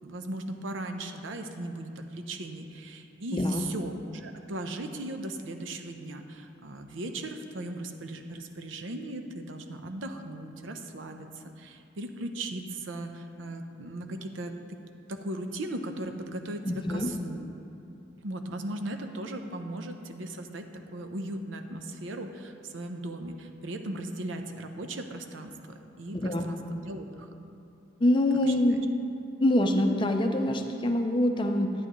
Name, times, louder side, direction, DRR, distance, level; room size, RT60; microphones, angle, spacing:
voice 1, 0.0-14.5 15.1-17.5 18.2-27.3 28.5-28.6, right 1 dB, 80° right, 6 dB, 0.7 m, -37 dB
voice 2, 3.3-3.6 16.6-17.1 26.1-26.5 28.0-28.8 29.4-31.7, left 1 dB, 25° left, 5 dB, 0.5 m, -25 dB
11.0 x 9.6 x 3.1 m, 2.9 s
head